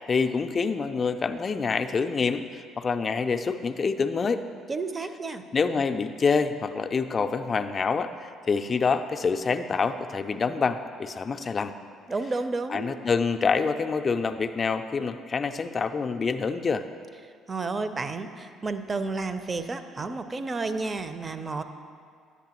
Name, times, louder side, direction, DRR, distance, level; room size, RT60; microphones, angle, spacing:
voice 1, 0.1-4.4 5.5-11.7 12.7-16.8, left 5 dB, 35° left, 8 dB, 0.4 m, -26 dB
voice 2, 4.7-5.4 12.1-12.9 17.5-21.6, right 3 dB, 30° right, 10 dB, 0.5 m, -31 dB
10.0 x 8.3 x 2.9 m, 2.2 s
figure-of-eight pair, 50°, 0 cm